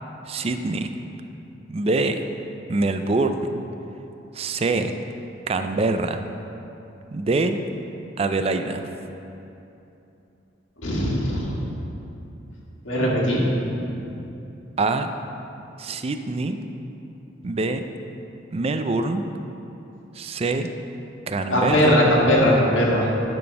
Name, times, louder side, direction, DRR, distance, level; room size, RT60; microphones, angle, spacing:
voice 1, 0.3-0.9 1.7-2.3 2.7-3.6 4.3-4.9 5.5-6.2 7.1-7.6 8.2-8.9 14.8-15.1 15.8-16.6 17.4-17.9 18.5-19.2 20.2-20.7 21.3-22.0, right 3 dB, 30° right, 8 dB, 0.4 m, -24 dB
voice 2, 10.8-11.6 12.8-13.4 13.7-14.1 21.5-23.1, equal, 90° left, -4 dB, 1.8 m, -20 dB
11.0 x 4.2 x 5.8 m, 2.9 s
head